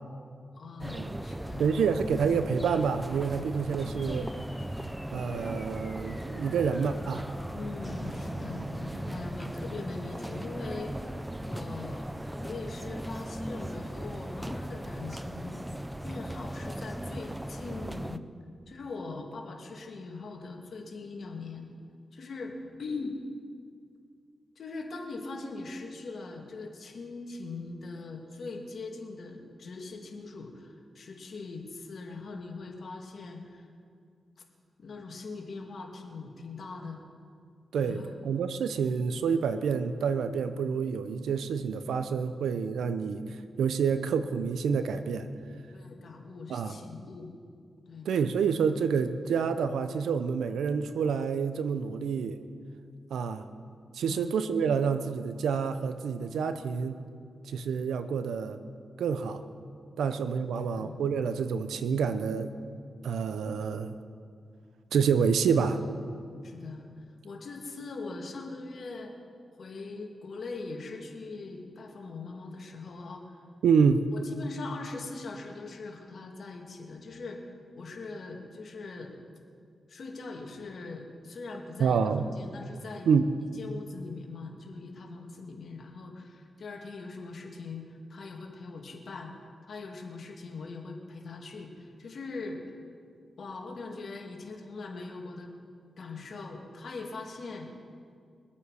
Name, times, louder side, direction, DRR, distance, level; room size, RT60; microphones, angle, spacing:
voice 1, 0.5-1.8 7.5-15.6 16.0-18.3 18.7-21.7 22.1-23.2 24.6-33.7 34.8-37.0 37.8-38.2 45.7-47.3 47.9-48.1 54.1-54.3 60.8-61.0 66.4-66.9 67.2-69.1 69.6-73.4 74.1-79.2 79.9-83.1 83.6-92.6 93.4-95.5 96.0-97.7, left 3 dB, 65° left, 1 dB, 2.1 m, -41 dB
sound 1, 0.8-18.2, right 1 dB, 10° right, 0.6 m, -38 dB
voice 2, 1.6-4.3 5.1-7.2 8.5-8.6 37.7-45.3 46.5-46.8 48.0-52.4 53.1-53.5 53.9-57.0 57.4-58.6 59.0-59.4 60.0-62.5 63.0-63.9 64.9-65.8 73.6-74.1 81.8-82.3 83.1-83.2, right 6 dB, 90° right, 10 dB, 0.7 m, -28 dB
sound 2, 3.8-12.4, equal, 10° left, 4.1 m, -46 dB
23.5 x 8.5 x 4.9 m, 2.2 s
cardioid pair, 55°, 0 cm